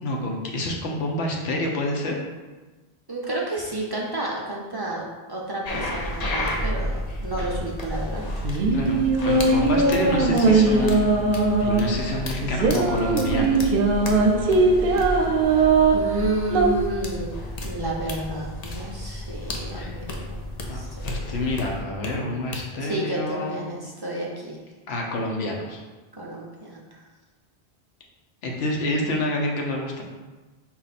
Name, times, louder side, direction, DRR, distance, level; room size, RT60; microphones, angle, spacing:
voice 1, 0.0-2.2 8.7-11.1 11.6-13.7 19.7-19.9 20.7-23.6 24.9-25.8 28.4-30.0, left 1 dB, 85° left, 0 dB, 0.9 m, -28 dB
voice 2, 3.1-8.6 14.7-17.3 17.6-20.4 20.7-21.5 22.8-24.6 26.1-27.0, right 1 dB, 40° right, -3 dB, 0.3 m, -31 dB
sound 1, 5.6-22.1 22.5-22.6, left 1 dB, 50° left, 0.5 m, -32 dB
sound 2, 8.2-16.7, right 3 dB, 65° right, 0.7 m, -20 dB
4.3 x 2.3 x 4.0 m, 1.2 s
omnidirectional pair, 1.1 m